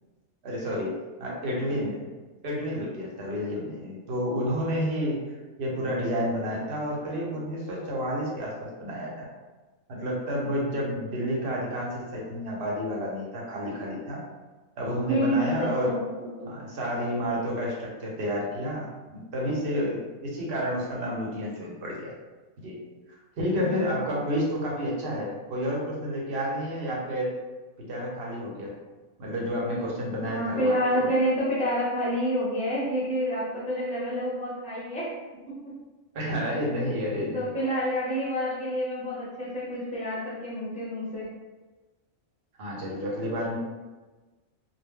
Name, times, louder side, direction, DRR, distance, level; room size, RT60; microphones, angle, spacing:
voice 1, 0.4-2.1 2.4-5.2 5.6-9.3 9.9-14.2 14.8-15.9 16.4-22.1 22.6-22.8 23.4-27.3 27.8-28.8 29.2-31.1 36.1-37.5 42.6-43.6, equal, 55° right, -3 dB, 0.9 m, -30 dB
voice 2, 15.1-16.3 23.6-24.1 30.3-35.1 35.5-35.7 36.2-36.3 37.3-41.3, equal, 10° left, -6 dB, 0.5 m, -28 dB
2.2 x 2.1 x 3.5 m, 1.2 s
omnidirectional pair, 1.4 m